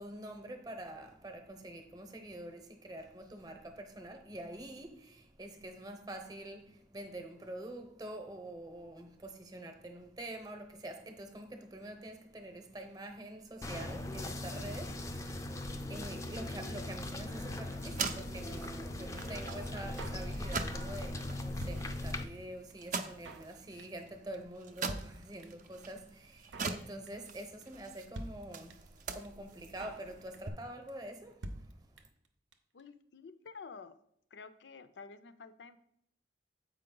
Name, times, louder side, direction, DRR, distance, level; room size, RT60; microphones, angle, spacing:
voice 1, 0.0-32.1, right 1 dB, 20° right, 5 dB, 0.8 m, -46 dB
sound 1, 13.6-22.2, left 1 dB, 15° left, 0.4 m, -39 dB
sound 2, 17.2-30.5, right 5 dB, 45° right, 0.4 m, -44 dB
Drum kit, 20.0-20.8 21.1-21.2 21.3-22.4 22.7-22.8 23.0-23.5 23.8-24.1 24.3-24.4 24.6-24.7 24.9-25.7 26.0-26.1 26.2-26.8 27.1-27.3 27.6-27.7 27.9-28.0 28.1-29.0 29.2-29.3 29.5-30.1 30.3-30.6 30.9-31.0 31.2-31.3 31.4-32.3 32.5-32.6 32.8-32.9, right 1 dB, 90° right, 0.7 m, -46 dB
voice 2, 32.7-34.0 34.3-35.8, left 5 dB, 70° left, 12 dB, 0.5 m, -50 dB
7.4 x 4.8 x 3.8 m, 0.72 s
head